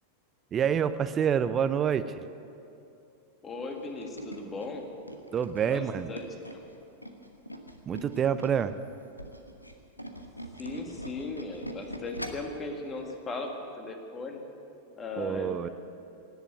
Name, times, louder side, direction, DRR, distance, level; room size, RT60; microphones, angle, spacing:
voice 1, 0.5-2.1 5.3-6.1 7.9-8.7 15.2-15.7, right 8 dB, 25° right, 13 dB, 0.5 m, -27 dB
voice 2, 3.4-4.9 5.7-6.3 10.6-13.5 13.8-14.4 15.0-15.7, left 3 dB, 20° left, 3 dB, 1.9 m, -37 dB
Tools, 3.7-8.7 9.1-12.6 13.0-13.2 13.5-13.6, equal, 90° left, 1.1 m, -42 dB
18.0 x 8.1 x 9.2 m, 2.6 s
figure-of-eight pair, 90°, 0 cm